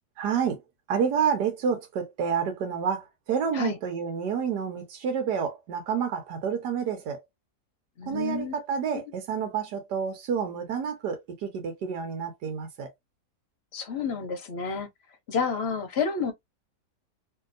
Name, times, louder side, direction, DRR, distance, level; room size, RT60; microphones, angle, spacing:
voice 1, 0.2-0.6 0.9-7.2 8.1-12.9, right 7 dB, 85° right, 1.6 m, -29 dB
voice 2, 8.0-8.5 13.7-14.9 15.3-16.3, left 5 dB, 50° left, 0.8 m, -29 dB
3.1 x 2.8 x 2.5 m
omnidirectional pair, 1.7 m